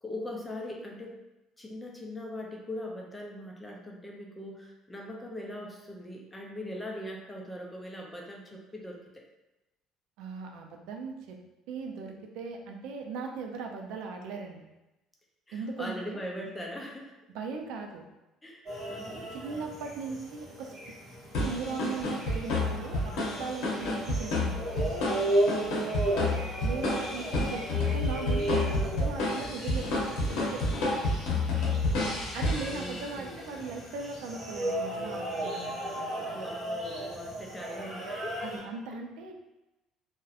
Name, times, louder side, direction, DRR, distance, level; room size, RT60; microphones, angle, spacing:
voice 1, 0.0-1.2 1.6-9.3 15.5-17.1 18.4-19.3 25.7-26.5 28.3-28.4 32.7-33.4 36.3-38.5 39.3-39.4, left 1 dB, 10° left, -1 dB, 0.4 m, -41 dB
voice 2, 10.2-11.4 11.7-14.7 15.5-16.2 17.3-18.0 19.3-20.9 21.3-24.7 26.6-31.1 32.3-36.4 38.4-39.3, right 4 dB, 80° right, 3 dB, 0.3 m, -38 dB
sound 1, 18.7-38.6, right 1 dB, 35° right, 0.9 m, -35 dB
sound 2, 21.3-33.3, left 2 dB, 80° left, 0.7 m, -30 dB
2.7 x 2.0 x 2.3 m, 0.97 s
cardioid pair, 145°, 0 cm